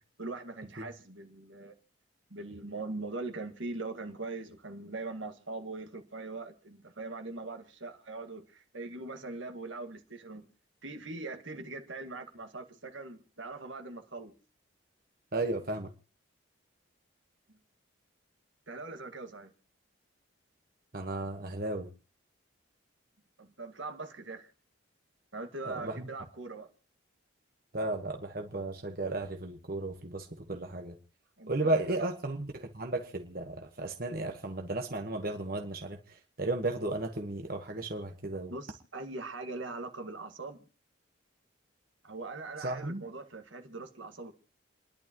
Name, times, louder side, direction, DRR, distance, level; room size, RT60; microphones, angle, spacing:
voice 1, 0.2-1.7 2.3-10.5 10.8-14.3 18.7-19.5 23.4-24.5 25.3-26.7 31.4-31.8 38.5-40.6 42.0-44.3, right 3 dB, 70° right, 1.9 m, -41 dB
voice 2, 15.3-15.9 20.9-21.9 25.6-26.1 27.7-31.0 31.5-36.0 36.4-38.5 42.6-43.0, right 2 dB, 45° right, 1.3 m, -34 dB
29.5 x 11.0 x 3.0 m
head